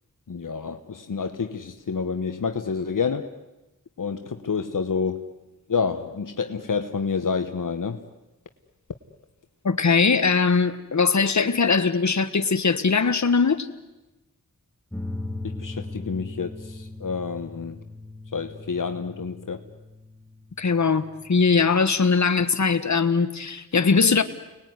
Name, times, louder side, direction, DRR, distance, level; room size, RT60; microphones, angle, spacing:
voice 1, 0.3-3.3 4.0-5.3 5.7-8.0 15.4-17.8 18.3-19.7, left 5 dB, 75° left, 1.3 m, -28 dB
voice 2, 9.6-13.7 20.6-24.2, left 5 dB, 60° left, 1.6 m, -21 dB
sound 1, 14.9-21.8, left 2 dB, 5° left, 2.1 m, -39 dB
29.5 x 20.5 x 9.6 m
wide cardioid pair, 80°, 33 cm